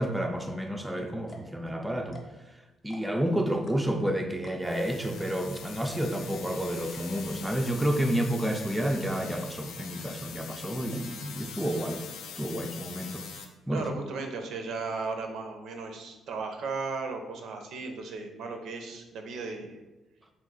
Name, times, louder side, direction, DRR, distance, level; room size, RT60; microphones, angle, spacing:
voice 1, 0.0-2.2 2.8-12.1 12.4-13.3 13.7-13.9, right 1 dB, 5° right, 4 dB, 0.4 m, -30 dB
sound 1, 0.7-0.8 1.2-1.5 2.0-2.5 2.8-3.2 3.7-4.0 4.4-4.8 5.2-5.3 5.5-5.6 5.9-6.2 6.6-6.8 7.4-7.8 8.3-8.5 8.8-8.9 9.2-9.5 10.0-10.4 10.9-11.2 11.7-11.9 12.2-12.3 12.6-13.0 13.3-13.9, left 3 dB, 40° left, 0.7 m, -49 dB
sound 2, 4.6-13.5, left 6 dB, 85° left, 0.4 m, -43 dB
voice 2, 13.7-19.8, right 4 dB, 75° right, 4 dB, 0.5 m, -36 dB
3.2 x 2.9 x 3.8 m, 1.1 s
cardioid pair, 90°, 0 cm